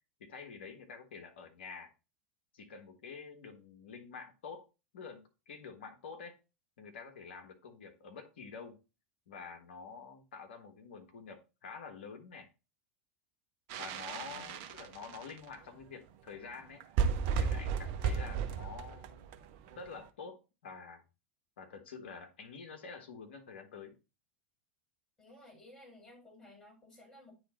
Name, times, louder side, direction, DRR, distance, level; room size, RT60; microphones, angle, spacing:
voice 1, 0.2-1.9 2.5-4.7 4.9-6.4 6.8-8.8 9.3-12.5 13.8-19.3 19.7-21.0 21.6-24.0, left 5 dB, 65° left, 4 dB, 1.4 m, -48 dB
sound 1, 13.7-15.5 16.3-16.4 16.5-16.6 16.8-19.9, right 6 dB, 45° right, 0.7 m, -34 dB
voice 2, 14.1-14.7 18.2-18.8 25.2-27.3, left 1 dB, 15° left, -2 dB, 4.0 m, -57 dB
9.3 x 3.3 x 4.1 m, 0.29 s
figure-of-eight pair, 85°, 6 cm